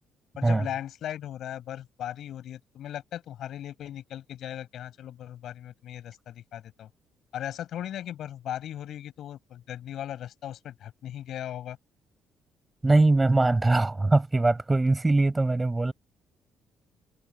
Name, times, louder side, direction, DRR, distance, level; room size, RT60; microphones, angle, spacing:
voice 1, 0.4-6.9 7.3-11.8, left 11 dB, 70° left, 5.4 m, -38 dB
voice 2, 12.8-15.9, right 2 dB, 15° right, 7.0 m, -22 dB
cardioid pair, 95°, 0 cm